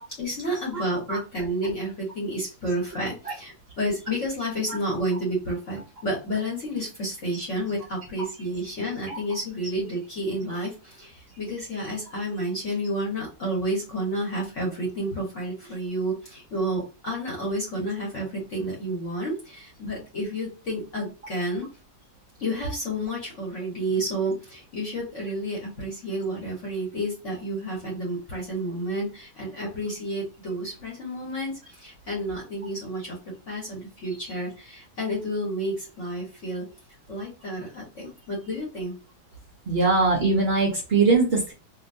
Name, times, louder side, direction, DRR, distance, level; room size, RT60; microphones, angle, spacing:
voice 1, 0.2-21.6 22.4-33.2 33.5-36.7 37.1-39.0, right 1 dB, 45° left, -3 dB, 1.2 m, -30 dB
voice 2, 39.7-41.5, right 3 dB, 60° right, -2 dB, 0.6 m, -21 dB
2.8 x 2.7 x 2.6 m, 0.33 s
omnidirectional pair, 2.1 m